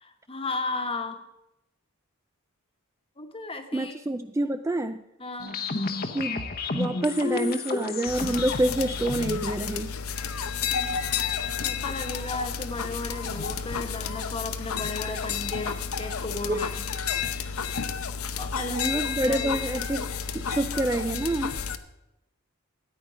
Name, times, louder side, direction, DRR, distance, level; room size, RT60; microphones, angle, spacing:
voice 1, 0.0-1.2 3.2-3.9 5.2-5.6 11.6-16.7 17.3-17.8 18.4-18.9 19.2-19.6, left 3 dB, 25° left, 6 dB, 1.2 m, -35 dB
voice 2, 3.7-5.0 6.1-9.9 16.5-16.7 18.7-20.1 20.3-21.5, right 1 dB, 15° right, 9 dB, 0.3 m, -27 dB
sound 1, 5.4-9.4, left 4 dB, 45° left, 0.9 m, -31 dB
sound 2, 8.1-21.8, left 6 dB, 90° left, 0.8 m, -31 dB
13.5 x 9.6 x 5.0 m, 0.90 s
head